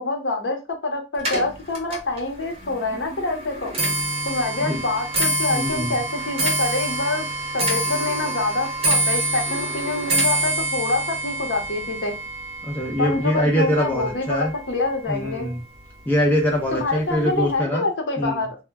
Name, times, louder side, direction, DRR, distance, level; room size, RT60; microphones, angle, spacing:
voice 1, 0.0-3.7 4.2-7.3 7.5-12.2 13.0-15.5 16.7-18.6, left 2 dB, 85° left, 3 dB, 0.8 m, -26 dB
Clock, 1.2-14.5 14.8-15.3 16.1-16.2 16.5-16.9 17.2-17.3, right 2 dB, 35° right, 0.7 m, -26 dB
voice 2, 5.5-6.0 12.6-14.5 15.1-15.6 16.1-17.9 18.2-18.5, equal, 10° left, -1 dB, 0.5 m, -23 dB
2.1 x 2.0 x 3.4 m, 0.28 s
head